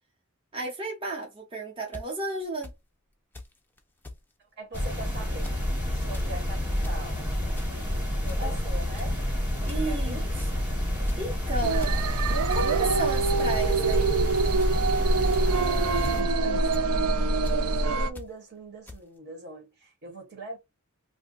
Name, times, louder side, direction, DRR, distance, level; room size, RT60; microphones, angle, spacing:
voice 1, 0.5-2.7 8.4-8.5 9.7-10.6 11.2-11.8 12.5-14.1, right 2 dB, 25° right, 0.8 m, -33 dB
sound 1, 1.9-2.0 2.6-2.7 3.3-3.5 3.8-4.2 4.7-5.0 5.3-5.6 6.0-6.3 6.7-7.0 7.6-7.9 8.3-8.5 9.0-9.2 9.7-9.8 10.1-10.5 11.0-11.4 11.8-12.0 12.5-12.7 13.0-13.3 13.9-14.1 14.6-14.7 15.3-15.6 16.0-16.3 16.7-16.9 17.4-17.6 18.2-18.3 18.9-19.0, left 2 dB, 10° left, 0.4 m, -42 dB
voice 2, 4.6-5.5 5.9-7.2 8.2-9.2 9.5-10.3 15.4-20.6, right 1 dB, 55° right, 1.2 m, -42 dB
sound 2, 4.7-16.2, left 1 dB, 10° right, 1.1 m, -29 dB
sound 3, 11.6-18.1, right 3 dB, 80° right, 0.4 m, -25 dB
2.6 x 2.2 x 3.9 m
head